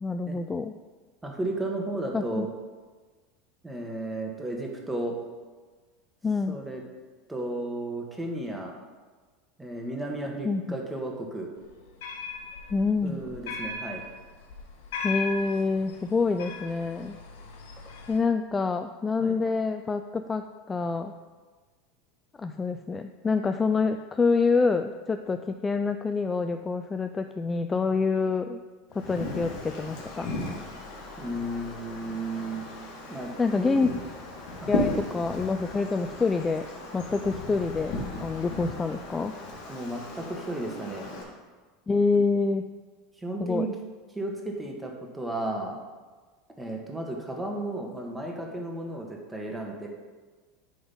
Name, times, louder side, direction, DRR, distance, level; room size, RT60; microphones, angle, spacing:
voice 1, 0.0-0.8 2.1-2.5 6.2-6.6 10.4-10.8 12.7-13.2 15.0-17.2 18.1-21.1 22.4-28.6 28.9-30.3 33.4-33.9 34.7-36.7 36.9-39.3 41.9-42.7 43.4-43.7, left 4 dB, 15° left, 8 dB, 0.3 m, -27 dB
voice 2, 1.2-2.5 3.6-5.1 6.5-6.8 7.3-8.7 9.6-11.5 13.0-14.0 19.2-19.3 31.2-32.6 33.1-33.3 33.6-33.8 34.6-34.8 39.7-41.1 43.2-43.7 44.1-45.8 46.6-49.9, right 1 dB, 10° right, 0 dB, 1.5 m, -33 dB
sound 1, 11.6-18.2, left 4 dB, 85° left, 1.2 m, -38 dB
Wind, 28.9-41.2, left 2 dB, 65° left, 2.2 m, -36 dB
9.5 x 3.9 x 5.5 m, 1.4 s
supercardioid pair, 125°, 0 cm